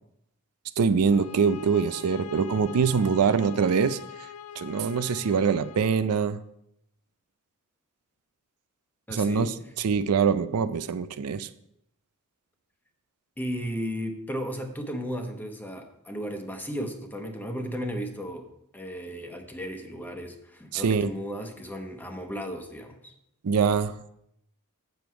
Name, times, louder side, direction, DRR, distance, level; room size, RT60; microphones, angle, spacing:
voice 1, 0.8-4.0 4.6-6.4 9.1-9.5 9.8-11.5 20.7-21.1 23.4-23.9, right 6 dB, 80° right, 12 dB, 0.5 m, -24 dB
sound 1, 1.1-6.1, left 6 dB, 75° left, 0.5 m, -43 dB
voice 2, 9.1-9.5 13.4-23.1, equal, 10° left, 4 dB, 1.0 m, -35 dB
7.8 x 7.0 x 4.6 m, 0.76 s
head